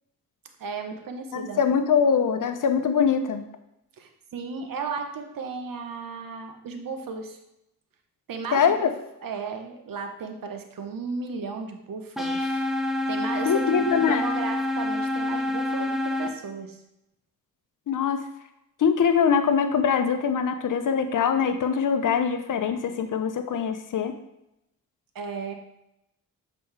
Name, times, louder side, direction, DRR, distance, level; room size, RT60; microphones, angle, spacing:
voice 1, 0.6-1.6 4.0-7.4 8.3-8.9 9.2-12.7 13.1-16.8 25.1-25.5, right 4 dB, 60° right, 6 dB, 1.0 m, -35 dB
voice 2, 1.3-3.4 8.5-8.9 13.4-14.2 17.9-18.2 18.8-24.1, left 7 dB, 55° left, 8 dB, 0.8 m, -23 dB
sound 1, 12.2-16.3, left 2 dB, ahead, 1.0 m, -27 dB
7.0 x 4.2 x 3.3 m, 0.85 s
cardioid pair, 60°, 37 cm